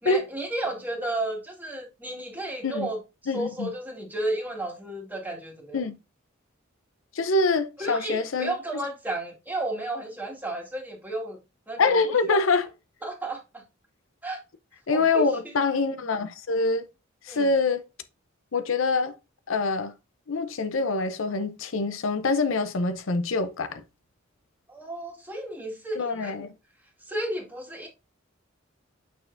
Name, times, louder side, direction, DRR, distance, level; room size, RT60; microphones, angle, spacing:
voice 1, 0.0-3.0 3.3-5.8 7.8-11.4 11.7-12.0 12.3-12.4 13.0-13.6 14.2-14.4 14.9-15.3 17.3-17.5 24.7-26.3 27.1-27.9, right 1 dB, 10° right, 1.9 m, -32 dB
voice 2, 3.3-3.7 5.7-6.0 7.1-8.5 11.8-12.7 14.9-16.9 17.2-17.8 18.5-19.1 19.5-19.9 20.3-23.8 25.9-26.5, left 3 dB, 75° left, 0.6 m, -25 dB
6.7 x 6.4 x 2.6 m
head